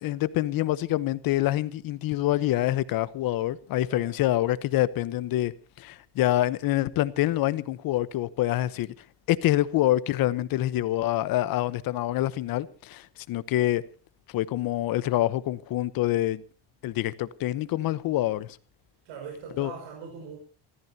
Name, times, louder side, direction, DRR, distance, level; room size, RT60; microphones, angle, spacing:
voice 1, 0.0-5.5 5.8-8.9 9.3-13.8 14.3-16.4 16.8-18.5 19.6-19.7, left 14 dB, 50° left, 1.0 m, -26 dB
voice 2, 19.0-20.4, right 6 dB, 90° right, 6.1 m, -41 dB
28.5 x 14.5 x 2.8 m
cardioid pair, 175°, 43 cm